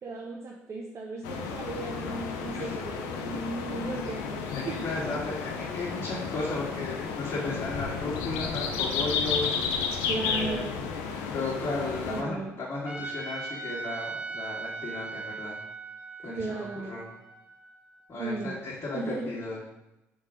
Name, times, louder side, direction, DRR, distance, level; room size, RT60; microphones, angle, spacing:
voice 1, 0.0-5.1 10.1-10.8 12.1-12.5 16.3-17.0 18.2-18.6 18.9-19.3, right 3 dB, 45° right, -2 dB, 1.0 m, -36 dB
sound 1, 1.2-12.2, left 5 dB, 85° left, 0.6 m, -32 dB
voice 2, 4.5-9.6 10.2-10.7 11.3-15.6 16.2-17.1 18.1-19.6, left 2 dB, 45° left, -9 dB, 1.9 m, -35 dB
Trumpet, 12.8-18.0, right 4 dB, 20° right, 1.4 m, -39 dB
5.2 x 3.7 x 5.0 m, 0.95 s
hypercardioid pair, 55°, 6 cm